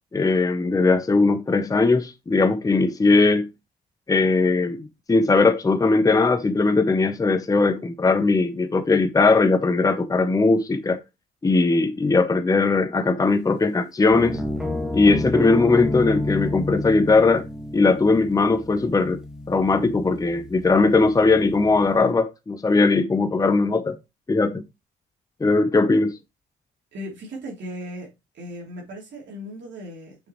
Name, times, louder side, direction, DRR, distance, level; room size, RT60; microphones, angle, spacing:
voice 1, 0.1-3.5 4.1-11.0 11.4-14.4 14.9-17.5 17.7-19.2 19.5-24.0 24.3-24.6 25.4-26.1, left 3 dB, 20° left, 0.7 m, -19 dB
sound 1, 14.1-22.0, left 1 dB, 5° right, 1.6 m, -30 dB
voice 2, 26.9-30.2, equal, 65° right, 3.0 m, -37 dB
6.4 x 6.4 x 3.0 m
cardioid pair, 90°, 20 cm